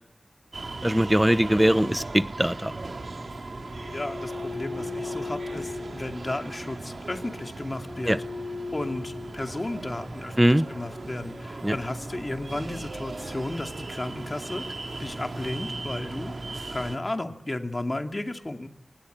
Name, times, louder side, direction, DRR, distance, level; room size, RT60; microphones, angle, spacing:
sound 1, 0.5-17.0, right 2 dB, 75° right, 2.6 m, -38 dB
voice 1, 0.8-2.7 8.1-8.2 10.4-10.7 11.6-11.7, equal, 5° right, 13 dB, 1.0 m, -21 dB
sound 2, 2.2-13.2, left 3 dB, 90° left, 3.6 m, -41 dB
voice 2, 3.9-8.2 8.7-14.7 15.0-16.3 16.7-18.7, left 1 dB, 35° left, 5 dB, 2.5 m, -33 dB
27.0 x 19.5 x 10.0 m, 0.81 s
wide cardioid pair, 80°, 0 cm